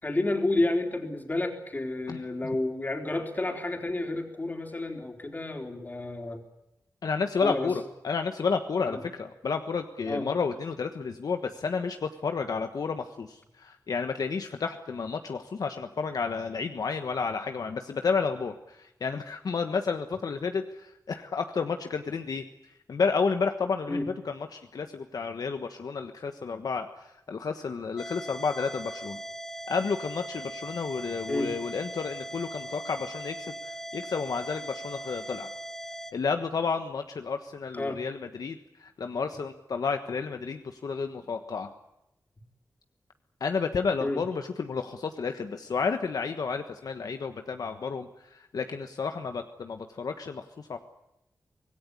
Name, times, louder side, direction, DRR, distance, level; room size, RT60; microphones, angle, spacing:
voice 1, 0.0-6.4 7.4-7.7 8.9-9.0 10.1-10.3 23.9-24.1 31.3-31.5 37.7-38.0 44.0-44.2, left 2 dB, 30° left, 3 dB, 3.8 m, -30 dB
voice 2, 7.0-22.4 22.9-29.2 29.7-35.5 36.1-41.7 43.4-50.8, left 5 dB, 80° left, 6 dB, 1.3 m, -31 dB
sound 1, 28.0-36.1, right 1 dB, 5° left, 1.9 m, -40 dB
25.5 x 19.0 x 9.9 m, 0.85 s
wide cardioid pair, 135°, 6 cm